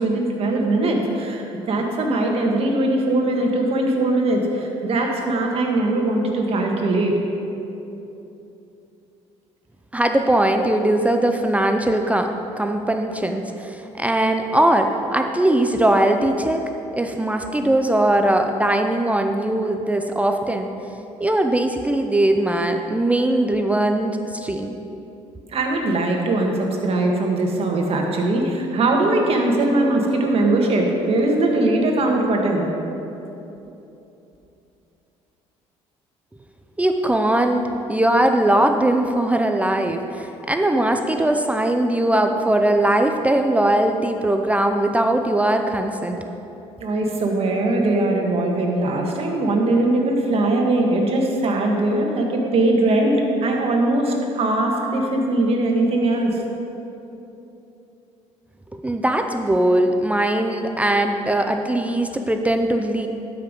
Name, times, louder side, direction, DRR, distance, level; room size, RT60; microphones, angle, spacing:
voice 1, 0.0-7.1 25.5-32.7 46.8-56.4, right 2 dB, 50° right, 1 dB, 1.8 m, -21 dB
voice 2, 9.9-12.3 12.6-16.6 16.9-20.7 21.2-24.8 36.8-37.6 37.9-46.2 58.7-63.1, right 1 dB, 10° right, 5 dB, 0.6 m, -20 dB
12.5 x 5.8 x 5.3 m, 3.0 s
supercardioid pair, 85°, 12 cm